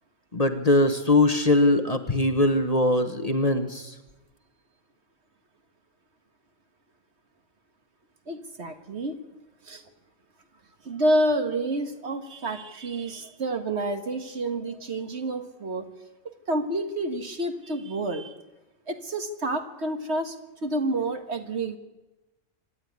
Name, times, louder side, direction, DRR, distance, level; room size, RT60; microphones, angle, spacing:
voice 1, 0.3-3.9, left 1 dB, 30° left, 7 dB, 1.3 m, -21 dB
voice 2, 8.3-9.2 9.6-9.8 10.8-15.9 16.5-18.4 18.9-20.4 20.6-21.8, right 1 dB, 55° right, 7 dB, 1.9 m, -28 dB
26.0 x 12.0 x 9.5 m, 1.1 s
omnidirectional pair, 1.3 m